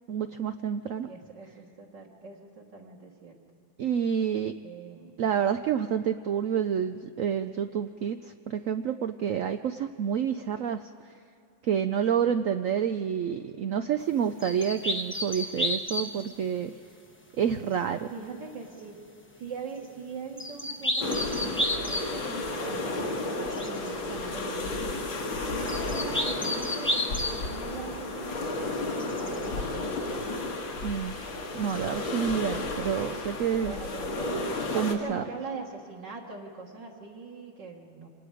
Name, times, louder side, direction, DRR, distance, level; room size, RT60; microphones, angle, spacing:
voice 1, 0.1-1.1 3.8-4.5 5.2-8.2 8.5-10.8 11.6-16.7 17.4-18.1 30.8-31.1 31.5-33.7 34.7-35.2, right 8 dB, 85° right, 8 dB, 0.7 m, -28 dB
voice 2, 1.0-3.4 4.6-5.1 18.1-19.0 19.4-24.9 25.2-30.1 33.6-34.4 34.7-38.1, right 4 dB, 65° right, -3 dB, 2.5 m, -42 dB
sound 1, 14.4-16.3 20.4-22.2 23.5-23.9 25.3-27.5 29.0-29.5 31.6-31.8, left 1 dB, 10° left, 0.6 m, -31 dB
sound 2, 21.0-34.9, left 2 dB, 80° left, 2.7 m, -32 dB
26.5 x 19.5 x 5.0 m, 2.7 s
omnidirectional pair, 2.1 m